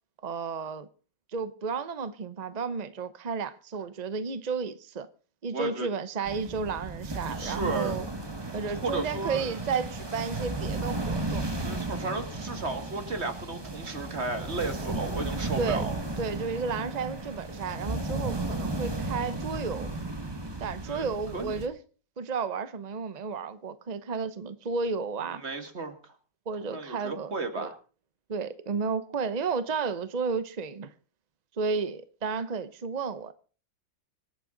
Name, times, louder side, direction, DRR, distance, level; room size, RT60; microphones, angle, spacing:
voice 1, 0.2-0.9 1.3-5.1 5.4-8.1 8.5-11.4 15.6-15.9 16.2-19.9 20.6-21.8 22.2-25.4 26.5-27.7 28.3-30.9 31.6-33.3, right 5 dB, 50° right, 0.4 m, -32 dB
voice 2, 5.5-5.9 7.2-7.9 8.7-9.6 11.6-16.0 20.9-21.6 25.3-26.1 26.6-27.8, right 3 dB, 35° right, 2.2 m, -34 dB
sound 1, 6.2-21.7, right 2 dB, 15° right, 1.4 m, -34 dB
25.5 x 8.9 x 3.8 m
omnidirectional pair, 2.0 m